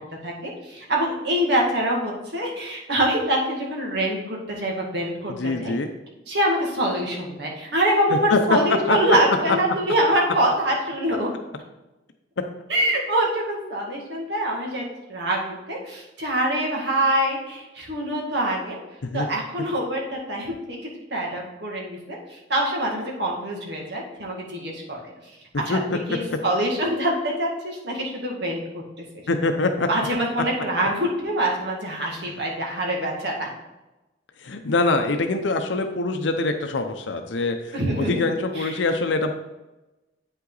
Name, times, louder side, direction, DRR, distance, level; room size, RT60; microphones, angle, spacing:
voice 1, 0.2-5.7 6.3-11.3 12.7-14.8 15.1-18.8 19.1-25.0 25.7-25.8 26.1-29.2 29.9-33.5 37.7-38.1 38.6-38.7, right 1 dB, 65° right, -1 dB, 2.1 m, -25 dB
voice 2, 5.3-5.9 8.1-9.0 9.5-9.6 19.0-19.3 25.5-25.8 26.1-26.2 29.3-29.9 32.2-32.3 34.4-39.3, left 3 dB, 80° left, 6 dB, 0.7 m, -24 dB
8.7 x 5.7 x 4.0 m, 1.0 s
head